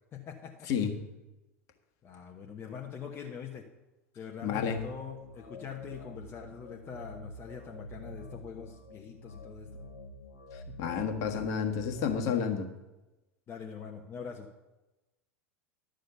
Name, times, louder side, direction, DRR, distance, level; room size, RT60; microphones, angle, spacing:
voice 1, 0.1-0.7 2.0-3.7 4.2-9.7 10.7-10.8 13.5-14.5, left 7 dB, 30° left, 1 dB, 1.1 m, -43 dB
voice 2, 4.4-4.8 10.5-12.7, left 7 dB, 45° left, 4 dB, 1.5 m, -30 dB
sound 1, 4.7-12.1, left 1 dB, 80° left, 1.2 m, -47 dB
12.0 x 6.4 x 6.9 m, 1.0 s
figure-of-eight pair, 80°, 8 cm